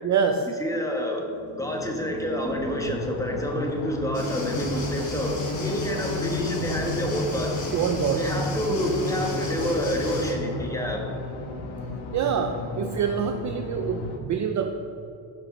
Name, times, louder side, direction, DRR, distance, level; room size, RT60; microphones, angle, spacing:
voice 1, 0.0-0.5 7.7-8.4 12.1-14.7, right 7 dB, 35° right, 5 dB, 0.5 m, -26 dB
voice 2, 0.6-1.2 1.6-7.6 8.1-11.0, equal, 5° left, 0 dB, 1.4 m, -28 dB
sound 1, 1.1-7.5, left 1 dB, 70° right, 2.2 m, -45 dB
sound 2, 2.5-14.2, left 2 dB, 65° left, 1.4 m, -33 dB
sound 3, 4.1-10.3, left 1 dB, 35° left, 2.4 m, -34 dB
16.5 x 5.8 x 4.1 m, 2.7 s
cardioid pair, 140°, 50 cm